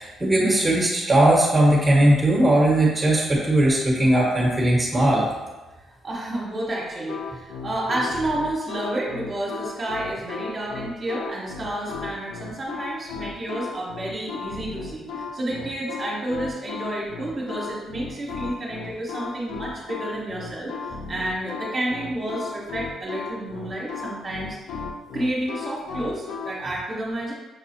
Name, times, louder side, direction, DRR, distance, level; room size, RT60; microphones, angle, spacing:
voice 1, 0.0-5.3, right 1 dB, 10° right, -4 dB, 1.3 m, -19 dB
voice 2, 6.0-24.6 25.1-27.3, right 1 dB, 30° right, -6 dB, 1.2 m, -30 dB
sound 1, 7.1-26.5, left 5 dB, 85° left, 0.4 m, -35 dB
6.2 x 2.4 x 2.8 m, 1.2 s
cardioid pair, 90°, 0 cm